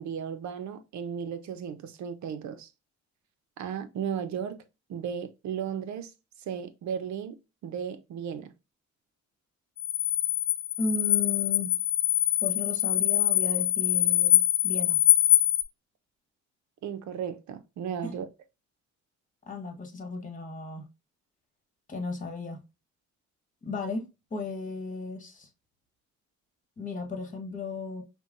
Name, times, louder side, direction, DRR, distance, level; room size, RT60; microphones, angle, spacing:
voice 1, 0.0-2.7 3.6-4.6 4.9-6.1 6.5-8.5 16.8-18.3, right 8 dB, 70° right, 0.7 m, -35 dB
sound 1, 9.8-15.6, left 13 dB, 40° left, 0.4 m, -24 dB
voice 2, 10.8-11.7 12.4-15.0 18.0-18.2 19.5-20.9 21.9-22.6 23.6-25.5 26.8-28.0, left 3 dB, 25° left, 1.3 m, -35 dB
5.5 x 2.2 x 2.5 m
cardioid pair, 90°, 30 cm